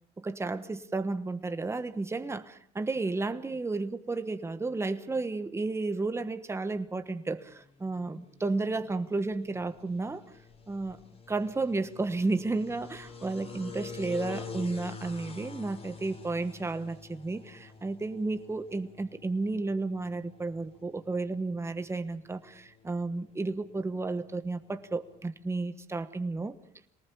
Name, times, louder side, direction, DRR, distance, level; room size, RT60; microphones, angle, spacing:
voice 1, 0.2-10.2 10.7-11.0 11.3-26.5, right 3 dB, 15° right, 10 dB, 1.2 m, -32 dB
sound 1, 7.3-25.3, left 5 dB, 35° left, 3.5 m, -48 dB
23.0 x 19.5 x 6.9 m, 0.67 s
cardioid pair, 110°, 17 cm